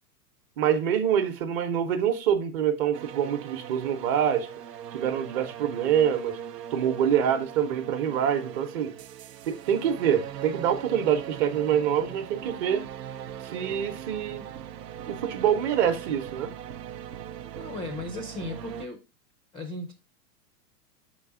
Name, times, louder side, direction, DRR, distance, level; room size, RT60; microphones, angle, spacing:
voice 1, 0.6-4.5 4.9-6.4 6.7-8.9 9.5-12.8 13.4-14.5 15.1-16.5, right 9 dB, 40° right, 0.9 m, -25 dB
sound 1, 2.9-18.9, right 10 dB, 85° right, 0.7 m, -40 dB
voice 2, 17.6-19.0 19.5-19.9, left 2 dB, 10° left, 0.4 m, -36 dB
6.6 x 4.0 x 3.6 m
hypercardioid pair, 135°, 47 cm